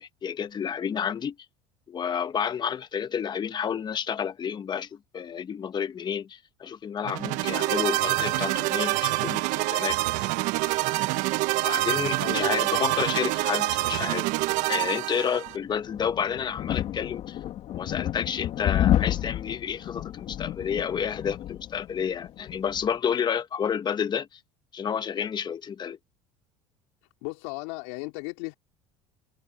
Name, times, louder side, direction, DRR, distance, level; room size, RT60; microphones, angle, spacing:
voice 1, 0.0-1.4 1.9-10.0 10.6-10.9 11.6-14.3 14.7-17.4 17.7-24.4 24.7-26.0, left 7 dB, 35° left, 1.3 m, -30 dB
sound 1, 7.0-15.6, right 19 dB, 70° right, 1.1 m, -26 dB
voice 2, 12.2-12.5 27.2-28.5, left 27 dB, 80° left, 4.1 m, -35 dB
sound 2, 15.5-23.0, left 12 dB, 55° left, 2.7 m, -30 dB
supercardioid pair, 100°, 13 cm